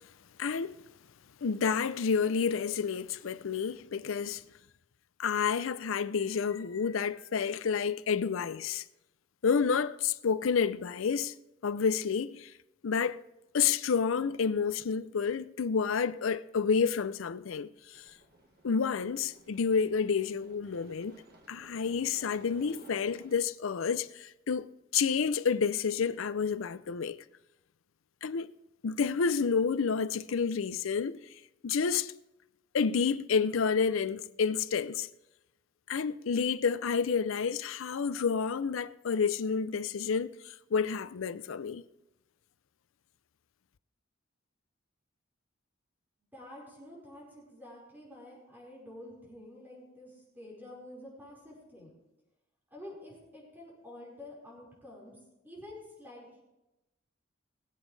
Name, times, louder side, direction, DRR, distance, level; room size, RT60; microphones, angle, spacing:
voice 1, 0.4-0.8 1.4-4.4 5.2-8.8 9.4-11.3 11.6-12.5 12.8-13.2 13.5-18.0 18.6-21.2 21.5-27.2 28.2-28.5 28.8-31.2 31.6-32.1 32.7-35.1 35.9-41.8, left 6 dB, 80° left, 0.5 m, -29 dB
sound 1, 17.9-23.4, right 2 dB, 50° right, 1.6 m, -57 dB
voice 2, 46.3-51.9 52.7-55.1 55.4-56.4, left 1 dB, 10° right, 4.9 m, -49 dB
22.0 x 8.2 x 3.3 m
head